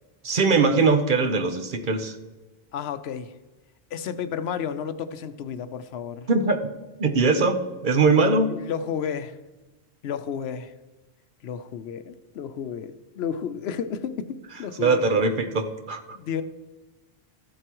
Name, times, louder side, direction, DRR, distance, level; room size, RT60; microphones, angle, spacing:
voice 1, 0.2-2.2 6.3-6.7 7.0-8.6 14.8-16.2, right 4 dB, 55° right, 7 dB, 0.9 m, -21 dB
voice 2, 2.7-3.3 3.9-6.3 8.5-9.4 10.0-10.7 11.4-15.2 16.1-16.4, left 7 dB, 75° left, 11 dB, 0.8 m, -32 dB
14.0 x 7.9 x 3.0 m, 1.2 s
omnidirectional pair, 1.1 m